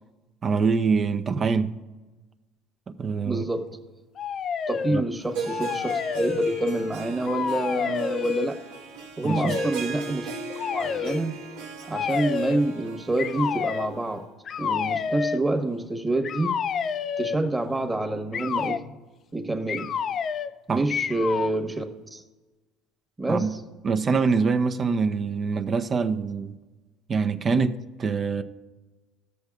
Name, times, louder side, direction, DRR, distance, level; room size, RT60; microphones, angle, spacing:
voice 1, 0.4-1.7 3.0-3.4 4.9-5.0 9.2-9.6 20.7-20.8 23.3-23.5 23.8-26.6 27.1-28.4, right 5 dB, 35° right, 0.6 m, -24 dB
voice 2, 3.2-3.8 4.7-8.6 9.2-10.3 10.7-11.4 11.9-14.3 14.6-16.6 17.2-18.9 19.3-19.9 20.7-21.8 22.1-22.2 23.2-23.6, right 2 dB, 15° right, 1.2 m, -27 dB
sound 1, 4.2-5.0 5.4-6.9 7.2-8.5 9.2-9.7 10.6-11.2 11.9-12.7 13.2-13.9 14.5-15.4 16.2-17.4 18.3-18.8 19.7-20.6 20.9-21.6, left 7 dB, 40° left, 0.3 m, -29 dB
Harp, 5.2-14.2, right 4 dB, 90° right, 1.1 m, -38 dB
19.0 x 6.6 x 2.4 m
supercardioid pair, 110°, 0 cm